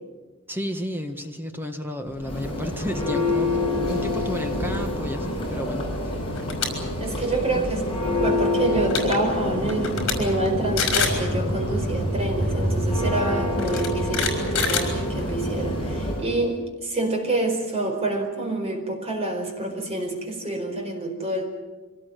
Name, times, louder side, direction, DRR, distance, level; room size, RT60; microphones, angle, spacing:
voice 1, 0.5-5.9 7.5-7.7, equal, 10° right, 6 dB, 1.6 m, -32 dB
Church bell, 2.1-16.3, left 1 dB, 25° left, 6.8 m, -26 dB
sound 1, 6.3-6.7 7.1-7.3 8.5-8.6 8.8-9.2 9.7-10.1 10.5-10.6 10.8-11.2 12.4-12.5 13.6-15.4, left 6 dB, 60° left, 5.3 m, -26 dB
voice 2, 7.0-7.9 8.2-21.5, right 2 dB, 30° right, 3 dB, 4.5 m, -27 dB
24.5 x 18.5 x 9.3 m, 1.2 s
head